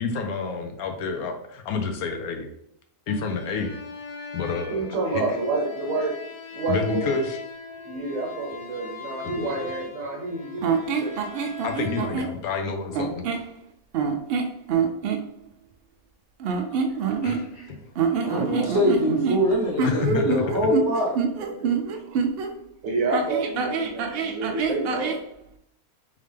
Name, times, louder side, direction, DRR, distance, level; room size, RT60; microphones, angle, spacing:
voice 1, 0.0-2.5 3.1-3.8 4.3-5.2 6.7-7.4 9.2-9.7 11.6-13.2 16.7-16.8 17.2-17.5 19.8-20.6, left 4 dB, 80° left, 5 dB, 1.1 m, -29 dB
sound 1, 3.1-12.1, left 4 dB, 60° left, 0.6 m, -40 dB
voice 2, 4.7-6.1 6.5-7.2 7.8-11.2 21.4-21.8 22.0-22.2 22.8-25.2, right 3 dB, 65° right, 1 dB, 1.2 m, -29 dB
sound 2, 10.6-12.3 12.9-13.5 13.9-15.2 16.4-17.7 18.0-22.5 23.1-25.2, right 5 dB, 85° right, 0.5 m, -26 dB
voice 3, 18.2-21.1, equal, 30° right, -5 dB, 0.4 m, -23 dB
3.6 x 3.2 x 3.2 m, 0.72 s
omnidirectional pair, 1.6 m